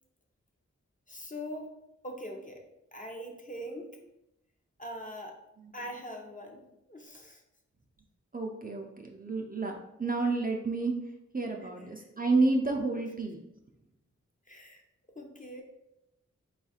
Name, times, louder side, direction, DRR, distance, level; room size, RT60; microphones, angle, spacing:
voice 1, 1.1-1.7 2.0-2.6 2.9-4.0 4.8-5.4 5.7-6.6 6.9-7.4 11.6-12.1 14.5-14.8 15.2-15.6, equal, 25° left, 1 dB, 0.7 m, -42 dB
voice 2, 8.3-9.7 10.0-10.9 11.3-13.4, right 3 dB, 30° right, 1 dB, 0.5 m, -29 dB
4.1 x 2.4 x 4.1 m, 0.86 s
wide cardioid pair, 70°, 30 cm